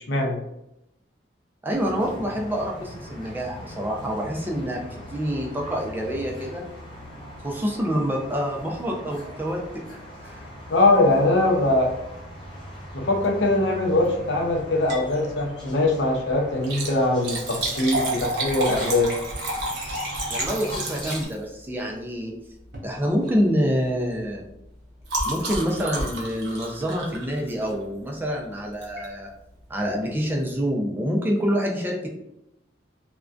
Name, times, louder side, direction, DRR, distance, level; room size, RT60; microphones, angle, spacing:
voice 1, 0.1-0.4 10.7-11.9 12.9-19.1, left 2 dB, 80° left, 0 dB, 0.6 m, -21 dB
voice 2, 1.6-6.6 7.4-9.8 10.2-10.4 20.3-22.3 22.8-24.4 25.2-29.3 29.7-32.1, equal, 10° right, -1 dB, 0.3 m, -27 dB
sound 1, 1.7-21.3, equal, 25° left, 0.7 m, -40 dB
Liquid, 14.7-15.1 15.5-15.6 16.5-21.6 22.6-22.9 23.2-23.5 23.8-27.9 28.8-29.1 29.6-29.7 29.9-30.0, right 2 dB, 60° right, 0.6 m, -31 dB
2.5 x 2.1 x 2.3 m, 0.84 s
head